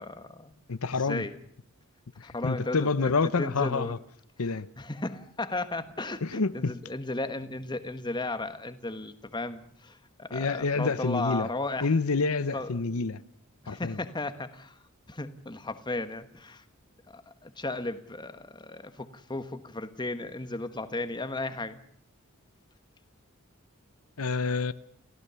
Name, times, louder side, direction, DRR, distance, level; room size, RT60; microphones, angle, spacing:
voice 1, 0.0-0.5 1.0-1.4 2.2-3.1 3.4-3.9 4.8-11.9 12.5-13.0 13.6-14.8 15.1-16.6 17.1-21.8, left 2 dB, 20° left, 1.3 m, -35 dB
voice 2, 0.7-1.3 2.2-4.0 4.4-4.7 6.2-6.7 10.3-11.5 11.8-13.2 13.7-14.0 24.2-24.7, left 4 dB, 85° left, 0.8 m, -28 dB
29.5 x 15.5 x 7.0 m
head